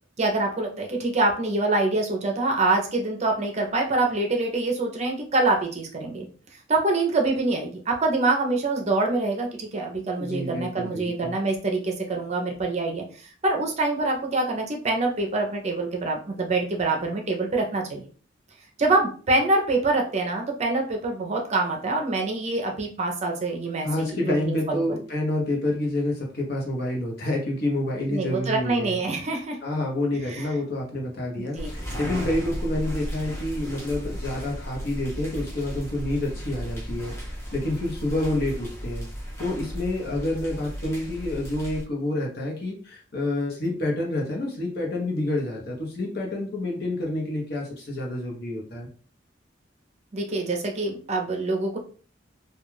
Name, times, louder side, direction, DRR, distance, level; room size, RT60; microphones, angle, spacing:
voice 1, 0.2-6.3 6.7-18.0 18.8-24.8 28.1-29.6 30.1-30.6 31.4-31.9 50.1-51.8, right 2 dB, 35° right, 2 dB, 0.5 m, -25 dB
voice 2, 10.2-11.4 23.8-29.0 29.6-39.0 39.4-48.9, left 1 dB, 55° left, -1 dB, 0.9 m, -28 dB
sound 1, 31.6-41.8, equal, 15° left, 0.7 m, -35 dB
2.3 x 2.3 x 3.1 m, 0.40 s
head